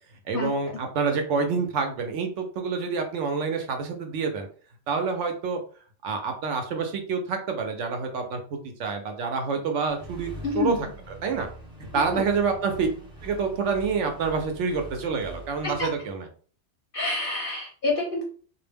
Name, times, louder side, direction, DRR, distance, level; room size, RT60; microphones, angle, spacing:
voice 1, 0.3-4.5 4.9-5.6 6.0-10.9 11.2-11.5 11.8-12.9 13.2-16.3, right 5 dB, 75° right, 4 dB, 0.9 m, -27 dB
Accelerating revving vroom, 9.9-16.1, right 1 dB, 5° right, 0.6 m, -43 dB
voice 2, 10.4-10.8 11.9-12.3 15.6-15.9 16.9-18.2, left 3 dB, 55° left, -2 dB, 0.7 m, -28 dB
2.3 x 2.0 x 3.3 m, 0.43 s
omnidirectional pair, 1.3 m